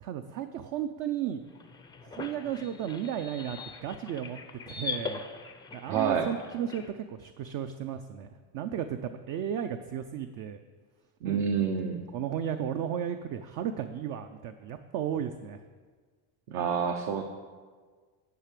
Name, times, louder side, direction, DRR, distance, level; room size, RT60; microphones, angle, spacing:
voice 1, 0.0-1.4 2.0-4.4 4.7-5.2 5.7-10.6 11.2-11.4 12.1-15.6, right 9 dB, 45° right, 8 dB, 0.5 m, -34 dB
sound 1, 1.4-6.9, left 4 dB, 10° left, 0.4 m, -41 dB
voice 2, 5.9-6.3 11.2-12.0 16.5-17.2, right 7 dB, 65° right, 4 dB, 1.0 m, -28 dB
9.2 x 5.8 x 8.3 m, 1.5 s
cardioid pair, 155°, 48 cm